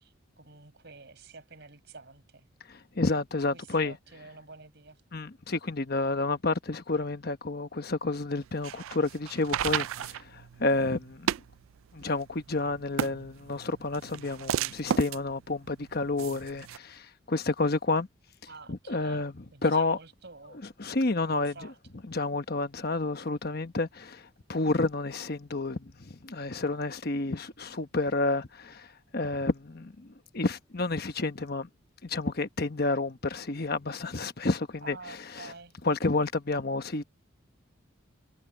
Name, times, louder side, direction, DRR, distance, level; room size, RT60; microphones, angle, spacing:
voice 1, 0.0-2.4 3.5-5.0 18.5-19.2 19.5-20.6 21.2-21.8 34.8-35.7, right 3 dB, 55° right, 5.3 m, -49 dB
voice 2, 2.7-4.0 5.1-11.3 11.9-18.1 18.7-20.0 20.8-21.7 22.1-31.7 32.0-35.5 35.8-37.0, left 3 dB, 50° left, 1.1 m, -30 dB
sound 1, 8.4-16.8, right 10 dB, 80° right, 0.3 m, -34 dB
head